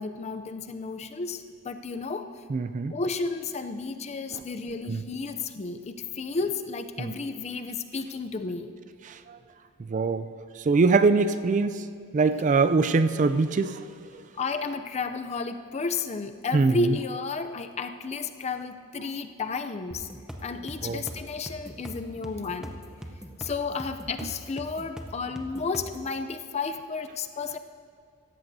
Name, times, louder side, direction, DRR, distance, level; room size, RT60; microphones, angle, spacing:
voice 1, 0.0-2.3 2.9-8.7 14.3-20.1 20.4-22.9 23.4-27.6, left 4 dB, 30° left, 9 dB, 0.5 m, -32 dB
voice 2, 2.5-3.0 4.3-4.4 4.9-5.0 7.0-7.1 9.3-9.4 9.9-10.3 10.7-11.8 12.1-13.8 16.5-16.9 20.8-21.0, right 4 dB, 35° right, 11 dB, 0.3 m, -23 dB
sound 1, 19.9-26.1, equal, 5° right, 0.7 m, -41 dB
17.0 x 14.0 x 2.7 m, 2.2 s
head